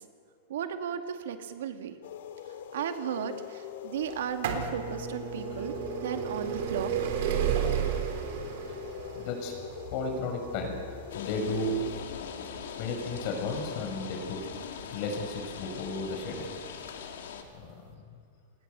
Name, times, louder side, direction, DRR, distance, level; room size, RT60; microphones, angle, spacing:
voice 1, 0.5-1.9 2.7-5.7 6.0-7.1, right 8 dB, 80° right, 6 dB, 2.0 m, -35 dB
sound 1, 2.0-12.0, left 10 dB, 70° left, 2.0 m, -43 dB
sound 2, 4.1-15.8 16.6-16.7 17.6-17.7 17.9-18.0, right 8 dB, 60° right, 3.7 m, -33 dB
voice 2, 9.1-9.5 9.9-11.8 12.8-14.4 14.9-16.5 17.5-18.0, left 2 dB, 45° left, 4 dB, 5.9 m, -34 dB
sound 3, 11.1-17.4, left 7 dB, 90° left, 2.9 m, -41 dB
27.5 x 20.0 x 6.9 m, 2.2 s
supercardioid pair, 160°, 0 cm